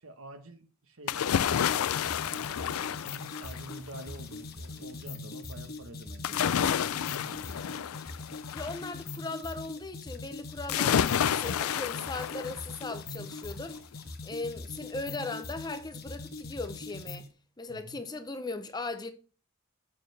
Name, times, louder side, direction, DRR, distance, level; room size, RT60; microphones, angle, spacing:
voice 1, 0.0-2.9 3.4-8.0 17.7-18.0, right 1 dB, 75° right, 1.2 m, -48 dB
sound 1, 1.1-3.9 6.2-8.9 10.7-13.0 13.4-13.5, left 9 dB, 90° left, 0.4 m, -30 dB
sound 2, 1.5-17.3, left 3 dB, 45° left, 1.2 m, -42 dB
voice 2, 8.5-13.8 14.2-17.3 17.6-19.1, left 3 dB, 20° left, 0.6 m, -38 dB
7.2 x 6.8 x 3.3 m
head